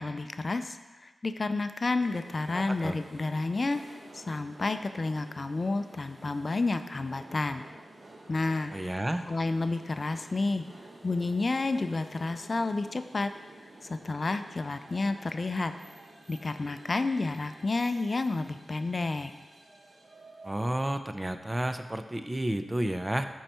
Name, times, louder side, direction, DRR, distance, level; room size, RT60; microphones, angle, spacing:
voice 1, 0.0-3.8 4.1-7.6 8.3-10.7 11.0-13.3 13.8-15.7 16.3-19.3, left 3 dB, 50° left, 9 dB, 0.5 m, -30 dB
sound 1, 2.0-20.7, right 2 dB, 60° right, 1.4 m, -51 dB
voice 2, 2.5-3.0 8.7-9.2 20.4-23.3, right 1 dB, 20° right, 8 dB, 0.7 m, -31 dB
11.5 x 4.6 x 4.4 m, 1.2 s
cardioid pair, 45°, 0 cm